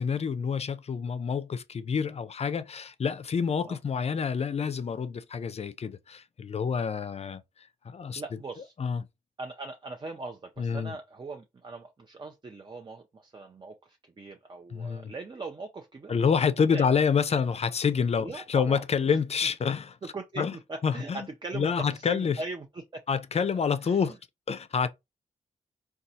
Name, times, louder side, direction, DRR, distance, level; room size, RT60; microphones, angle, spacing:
voice 1, 0.0-7.4 7.9-8.2 8.8-9.1 10.6-10.9 14.7-15.1 16.1-20.0 20.4-20.5 20.8-21.3 21.5-22.4 23.1-24.1 24.5-24.9, left 6 dB, 45° left, 0.4 m, -27 dB
voice 2, 8.1-8.7 9.4-16.3 16.7-16.9 17.3-17.4 18.2-19.2 20.1-23.0 23.8-24.1, right 3 dB, 35° right, 0.5 m, -40 dB
3.9 x 2.3 x 2.7 m
cardioid pair, 65°, 14 cm